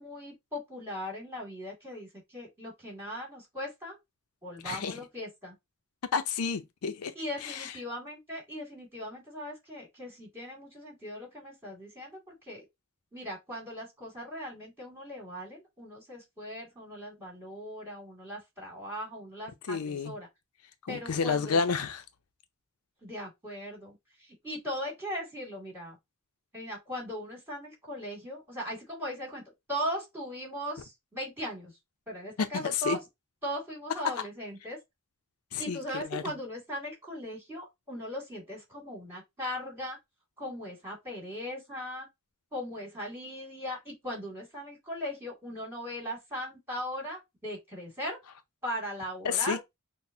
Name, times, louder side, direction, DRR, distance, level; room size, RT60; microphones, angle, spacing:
voice 1, 0.0-4.0 4.4-5.5 7.1-12.7 13.1-20.3 20.9-21.8 23.0-26.0 26.5-29.4 29.7-31.7 32.1-33.0 33.4-34.8 35.6-40.0 40.4-42.1 42.5-48.2 48.6-49.6, equal, 10° right, 2.4 m, -39 dB
voice 2, 4.6-5.0 6.1-7.1 7.4-7.7 19.7-20.1 20.9-22.0 32.4-33.0 35.5-36.2 49.2-49.6, left 5 dB, 80° left, 0.5 m, -30 dB
5.9 x 2.1 x 2.6 m
head